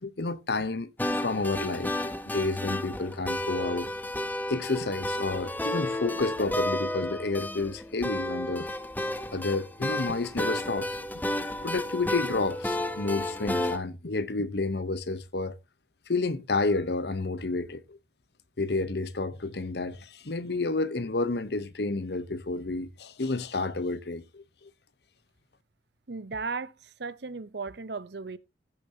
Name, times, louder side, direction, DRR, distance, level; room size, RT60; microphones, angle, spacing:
voice 1, 0.0-3.9 4.5-8.7 9.3-11.2 11.6-15.6 16.1-18.0 18.6-24.7, left 3 dB, 60° left, 0.8 m, -30 dB
sound 1, 1.0-13.8, left 1 dB, 10° left, 0.8 m, -32 dB
voice 2, 26.1-28.4, right 4 dB, 65° right, 0.7 m, -36 dB
16.0 x 6.8 x 2.8 m
head